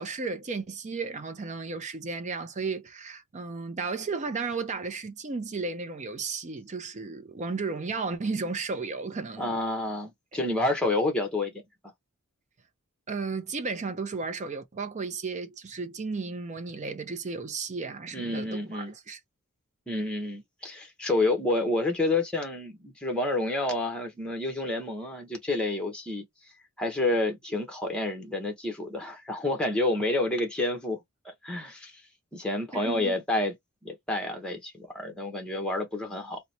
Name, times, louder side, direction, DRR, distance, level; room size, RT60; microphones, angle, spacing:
voice 1, 0.0-9.5 13.1-19.2 32.7-33.1, right 4 dB, 35° right, 0.5 m, -34 dB
voice 2, 9.4-11.5 18.1-18.9 19.9-26.2 26.8-31.0 31.2-32.0 32.3-33.5 33.8-36.4, left 2 dB, 5° left, 0.8 m, -29 dB
2.9 x 2.1 x 4.0 m
head